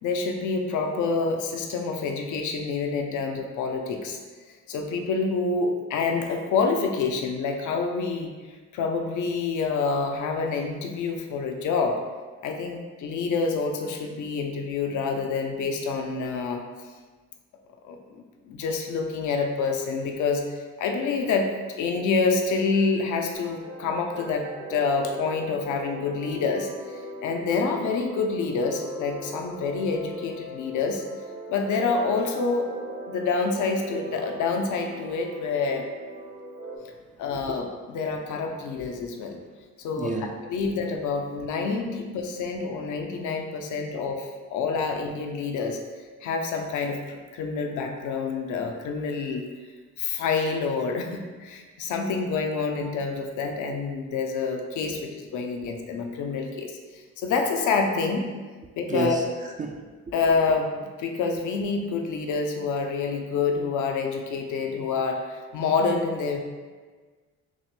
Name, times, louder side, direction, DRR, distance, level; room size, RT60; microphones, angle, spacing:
voice 1, 0.0-4.2 4.7-8.3 8.7-12.0 12.4-16.6 17.8-18.0 18.5-21.5 21.8-31.0 31.5-32.7 33.1-35.9 37.2-39.4 39.8-40.1 40.4-45.8 46.2-49.5 50.0-58.3 58.7-59.2 60.1-66.4, left 4 dB, 80° left, 3 dB, 0.6 m, -27 dB
sound 1, 23.3-36.8, right 1 dB, 55° right, 0.9 m, -40 dB
voice 2, 40.0-40.5 54.9-55.0 58.9-59.9, right 3 dB, 25° right, 1 dB, 0.4 m, -32 dB
6.1 x 2.1 x 3.1 m, 1.4 s
cardioid pair, 90°, 30 cm